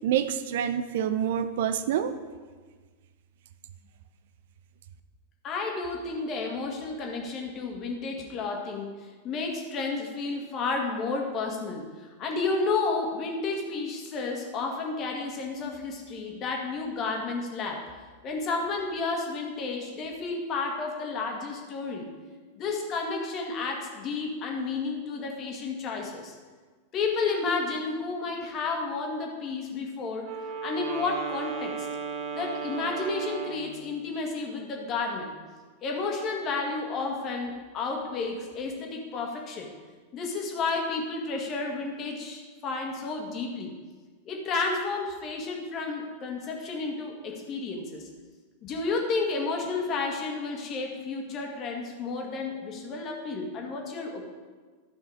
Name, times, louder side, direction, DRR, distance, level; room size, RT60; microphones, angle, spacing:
voice 1, 0.0-2.1, right 9 dB, 55° right, 11 dB, 0.5 m, -27 dB
voice 2, 5.4-17.9 18.2-22.1 22.6-26.3 26.9-30.3 30.6-31.9 32.3-35.4 35.8-39.7 40.1-43.7 44.3-48.1 48.6-54.2, left 4 dB, 35° left, 1 dB, 1.9 m, -31 dB
Wind instrument woodwind instrument, 30.2-33.7, right 5 dB, 40° right, 1.1 m, -35 dB
13.0 x 5.6 x 4.8 m, 1.4 s
figure-of-eight pair, 90°, 0 cm